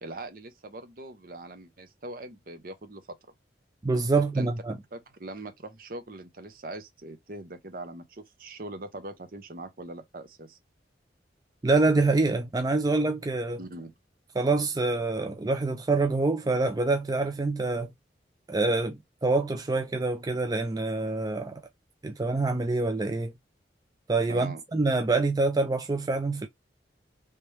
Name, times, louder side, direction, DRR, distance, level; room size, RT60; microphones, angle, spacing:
voice 1, 0.0-3.2 4.3-4.5 4.9-10.6 13.6-13.9 24.3-24.6, right 2 dB, 55° right, 0.8 m, -41 dB
voice 2, 3.8-4.8 11.6-13.6 14.4-17.9 18.5-21.6 22.0-23.3 24.1-26.5, right 3 dB, 20° right, 0.4 m, -26 dB
3.3 x 3.0 x 3.3 m
head